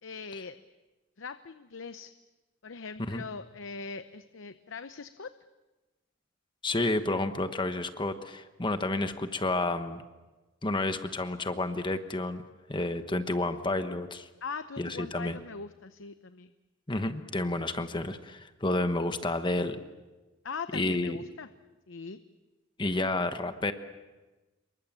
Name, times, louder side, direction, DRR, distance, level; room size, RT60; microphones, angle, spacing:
voice 1, 0.0-0.6 1.2-2.1 2.6-5.3 14.4-16.5 20.4-21.5 21.9-22.2, left 5 dB, 75° left, 11 dB, 0.8 m, -41 dB
voice 2, 6.6-10.0 10.6-12.4 12.7-14.3 14.8-15.4 16.9-19.8 20.7-21.2 22.8-23.7, left 2 dB, 25° left, 9 dB, 1.1 m, -30 dB
27.5 x 23.0 x 7.4 m, 1.2 s
head